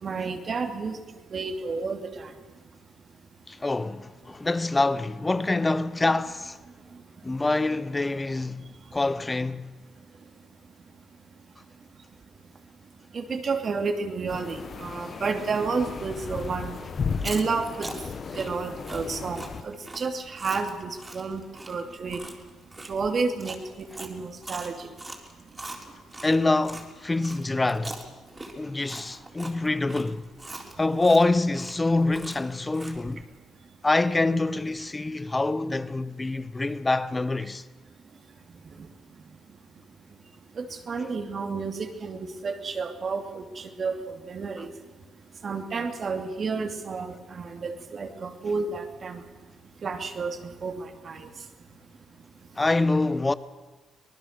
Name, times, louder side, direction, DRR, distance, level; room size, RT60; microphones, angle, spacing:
voice 1, 0.0-1.0 1.3-2.3 13.1-16.7 17.2-17.9 18.4-22.2 22.9-24.9 40.6-44.0 44.3-44.7 45.4-49.2 49.8-50.4 50.6-51.2, right 4 dB, 45° right, 2.8 m, -31 dB
voice 2, 3.5-6.6 7.2-9.7 26.2-28.0 28.5-30.3 30.8-33.2 33.8-37.6 52.6-53.3, left 2 dB, 20° left, 1.0 m, -25 dB
sound 1, 14.3-19.6, left 5 dB, 45° left, 1.2 m, -35 dB
Chewing mastication, 17.0-26.9 27.2-33.1, right 2 dB, 20° right, 4.1 m, -42 dB
25.0 x 19.5 x 6.7 m
cardioid pair, 90°, 0 cm